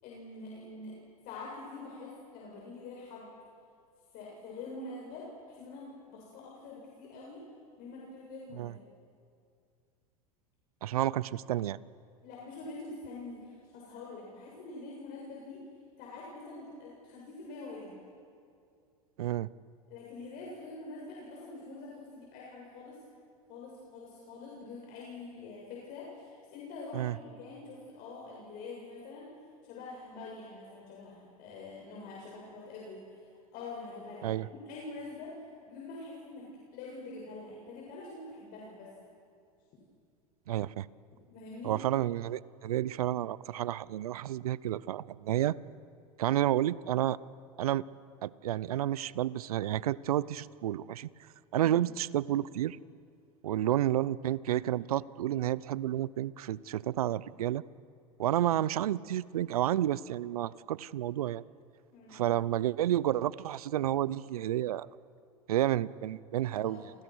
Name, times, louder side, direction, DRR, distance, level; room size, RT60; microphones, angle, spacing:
voice 1, 0.0-1.0 1.2-3.3 4.1-7.4 7.8-8.8 12.2-15.6 16.0-18.0 19.9-23.0 23.5-29.3 29.6-35.3 35.7-38.9 41.3-41.7 51.6-51.8 58.5-58.6 61.9-62.3 66.6-66.9, left 3 dB, 50° left, -3 dB, 7.7 m, -45 dB
voice 2, 10.8-11.8 19.2-19.5 26.9-27.2 34.2-34.5 40.5-40.9 41.6-45.6 46.2-47.2 47.6-47.8 48.2-51.1 51.5-52.8 53.4-57.6 58.2-61.4 62.1-64.9 65.5-66.8, right 12 dB, 80° right, 20 dB, 0.8 m, -30 dB
30.0 x 28.5 x 6.3 m, 2.4 s
hypercardioid pair, 100°, 19 cm